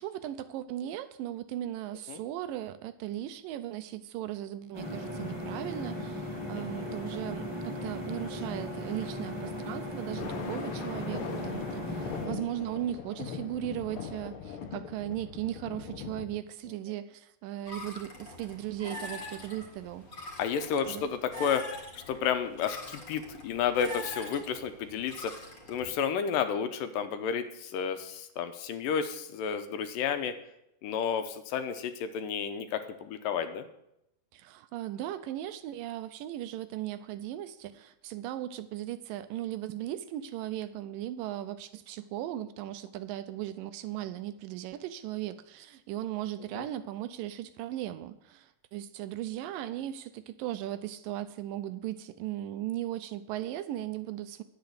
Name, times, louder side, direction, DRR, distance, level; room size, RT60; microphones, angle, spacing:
voice 1, 0.0-20.3 20.9-21.1 34.3-54.4, right 12 dB, 80° right, 12 dB, 2.2 m, -37 dB
sound 1, 4.7-12.3, left 1 dB, 10° left, 1.6 m, -37 dB
voice 2, 6.5-7.0 20.4-21.6 22.1-25.3 25.7-30.3 30.8-33.7 46.5-46.7, left 7 dB, 75° left, 9 dB, 2.3 m, -31 dB
Thunder, 10.1-16.3, left 6 dB, 60° left, 1.4 m, -40 dB
sound 2, 17.6-25.9, left 2 dB, 30° left, 1.7 m, -44 dB
10.5 x 8.9 x 6.8 m, 0.82 s
omnidirectional pair, 4.2 m